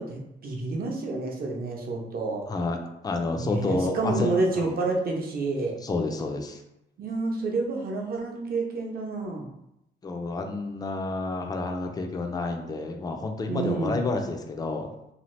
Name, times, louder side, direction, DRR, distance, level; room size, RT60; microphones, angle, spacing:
voice 1, 0.0-2.5 3.3-5.8 7.0-9.5 13.5-14.0, right 3 dB, 50° right, 0 dB, 0.8 m, -29 dB
voice 2, 3.0-4.8 5.8-6.6 10.0-14.9, left 3 dB, 20° left, 4 dB, 0.4 m, -29 dB
2.7 x 2.4 x 3.1 m, 0.83 s
cardioid pair, 90°, 20 cm